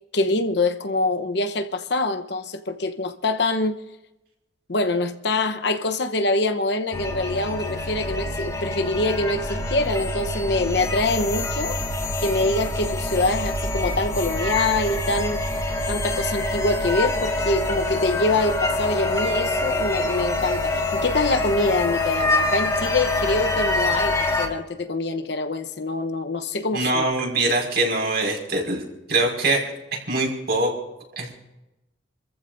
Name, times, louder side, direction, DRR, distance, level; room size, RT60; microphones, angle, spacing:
voice 1, 0.1-3.8 4.7-11.8 12.2-15.4 15.9-27.1, left 2 dB, 65° left, 1.0 m, -24 dB
sound 1, 6.9-24.5, left 2 dB, 20° left, 2.5 m, -25 dB
voice 2, 26.7-28.8 29.1-29.6 30.1-30.7 31.2-31.3, right 2 dB, 60° right, 5.5 m, -23 dB
29.5 x 14.5 x 2.6 m
head